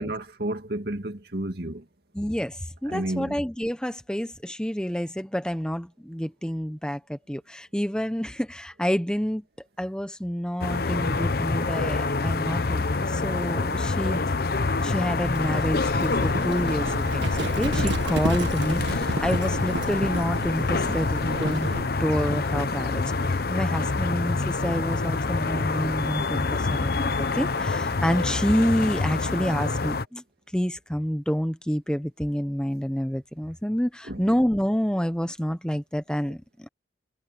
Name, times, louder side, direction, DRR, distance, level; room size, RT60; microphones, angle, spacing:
voice 1, 0.0-1.8 2.9-3.4 34.1-34.2, right 1 dB, 60° right, 2.2 m, -31 dB
voice 2, 2.1-9.4 9.8-14.3 14.8-17.3 17.5-21.7 22.0-30.2 30.5-36.7, equal, 5° left, 0.9 m, -28 dB
sound 1, 10.6-30.0, left 3 dB, 55° left, 0.8 m, -26 dB
Livestock farm animals working animals, 15.2-21.9, right 2 dB, 80° right, 1.8 m, -32 dB
head